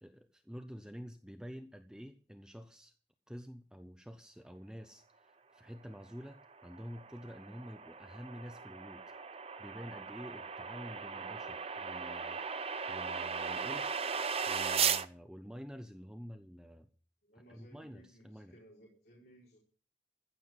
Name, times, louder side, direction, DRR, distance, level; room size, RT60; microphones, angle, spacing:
voice 1, 0.0-2.9 3.3-9.0 9.6-12.4 12.9-14.0 14.5-16.9 17.3-18.6, equal, 5° right, 7 dB, 0.8 m, -48 dB
sound 1, 6.4-15.1, right 6 dB, 35° right, 0.7 m, -37 dB
voice 2, 17.2-19.6, equal, 55° left, -4 dB, 4.4 m, -60 dB
15.0 x 7.2 x 8.0 m, 0.40 s
head